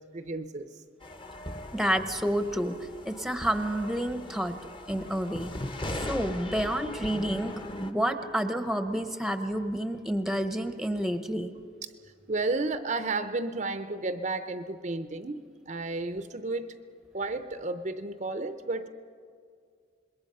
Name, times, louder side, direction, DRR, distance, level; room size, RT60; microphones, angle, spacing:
voice 1, 0.1-0.8 12.3-16.8 17.1-18.9, right 3 dB, 40° right, 9 dB, 0.6 m, -32 dB
sound 1, 1.0-7.9, left 1 dB, 25° left, 1.0 m, -39 dB
voice 2, 1.7-2.7 3.0-4.5 4.9-5.5 5.9-11.5, equal, ahead, 8 dB, 0.8 m, -29 dB
26.5 x 21.5 x 5.5 m, 2.2 s
head